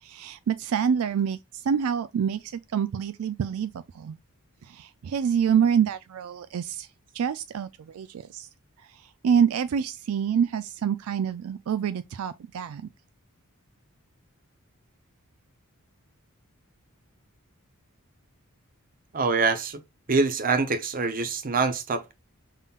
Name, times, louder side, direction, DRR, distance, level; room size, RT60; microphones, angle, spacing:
voice 1, 0.0-4.2 4.6-6.9 7.1-8.5 8.8-12.9, right 7 dB, 75° right, 0.4 m, -27 dB
voice 2, 19.1-19.8 20.1-22.1, right 4 dB, 40° right, 0.7 m, -25 dB
5.6 x 3.7 x 2.4 m
head